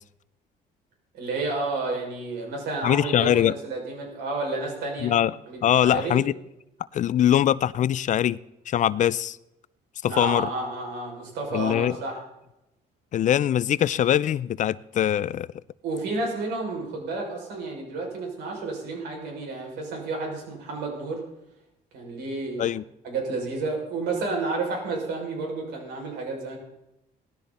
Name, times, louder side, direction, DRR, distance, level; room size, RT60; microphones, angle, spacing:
voice 1, 1.1-5.1 5.5-6.2 10.1-12.2 15.8-21.2 21.9-22.7 23.0-26.6, right 3 dB, 80° right, 0 dB, 6.2 m, -31 dB
voice 2, 2.8-3.5 5.0-5.3 5.6-6.3 6.9-8.4 8.7-9.4 10.0-10.5 11.5-12.0 13.1-15.5 22.6-22.8, left 11 dB, 45° left, 20 dB, 0.5 m, -22 dB
18.0 x 13.5 x 4.2 m, 0.88 s
cardioid pair, 110°, 17 cm